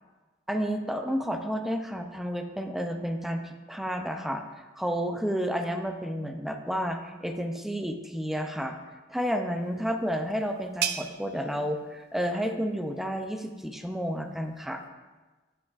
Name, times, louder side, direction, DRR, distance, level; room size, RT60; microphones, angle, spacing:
voice 1, 0.5-4.4 4.8-8.8 9.1-14.8, equal, ahead, 5 dB, 0.5 m, -31 dB
sound 1, 9.5-14.9, right 9 dB, 55° right, 0.4 m, -39 dB
8.6 x 7.7 x 2.5 m, 1.3 s
head